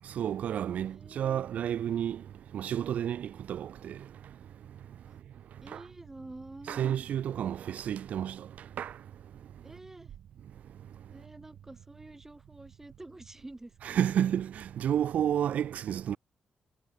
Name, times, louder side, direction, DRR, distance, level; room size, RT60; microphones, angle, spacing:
voice 1, 0.2-2.2 2.5-3.9 6.7-8.4 8.8-8.9 13.8-16.2, right 9 dB, 80° right, 2.1 m, -30 dB
voice 2, 0.8-1.2 5.1-5.2 5.6-6.9 9.6-10.1 11.1-13.7, right 2 dB, 15° right, 3.3 m, -48 dB
cardioid pair, 75°, 2 cm